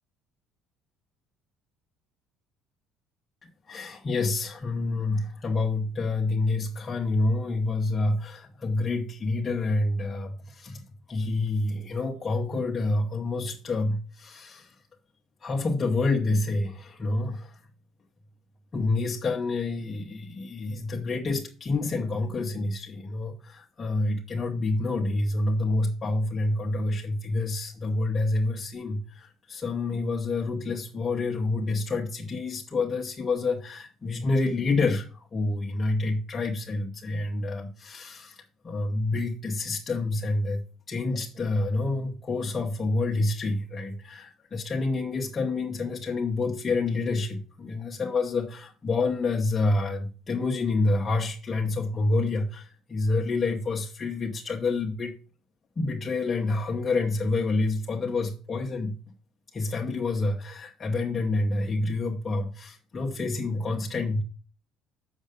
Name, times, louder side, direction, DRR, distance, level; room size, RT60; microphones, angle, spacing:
voice 1, 3.4-10.8 11.1-14.8 15.4-17.6 18.7-55.1 55.8-58.9 59.5-64.2, left 3 dB, 25° left, 0 dB, 1.0 m, -28 dB
7.1 x 6.6 x 5.1 m, 0.39 s
cardioid pair, 125°, 0 cm